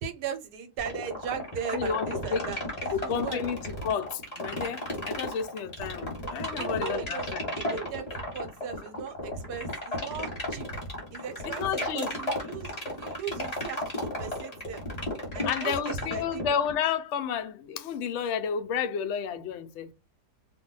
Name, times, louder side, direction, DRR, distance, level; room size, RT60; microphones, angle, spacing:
voice 1, 0.0-3.4 6.6-7.3 7.5-10.8 11.1-14.8 15.3-16.4, right 6 dB, 75° right, 1.2 m, -38 dB
sound 1, 0.8-16.7, left 1 dB, 25° left, 1.2 m, -33 dB
voice 2, 1.7-2.5 2.9-7.5 11.4-12.1 15.4-19.9, left 7 dB, 85° left, 0.6 m, -31 dB
2.7 x 2.1 x 3.8 m
omnidirectional pair, 1.8 m